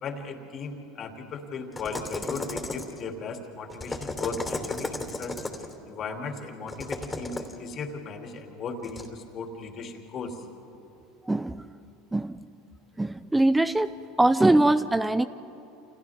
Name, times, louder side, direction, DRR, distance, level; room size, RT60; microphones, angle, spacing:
voice 1, 0.0-5.4 5.9-10.4, left 4 dB, 45° left, 2 dB, 2.9 m, -37 dB
sound 1, 1.7-3.1 3.7-5.7 6.7-7.6 8.8-9.1, left 2 dB, 15° left, 3.1 m, -34 dB
voice 2, 11.3-11.7 12.1-12.4 13.0-13.9 14.2-15.3, right 2 dB, 10° right, 13 dB, 0.5 m, -22 dB
29.5 x 28.5 x 3.6 m, 2.9 s
hypercardioid pair, 85°, 0 cm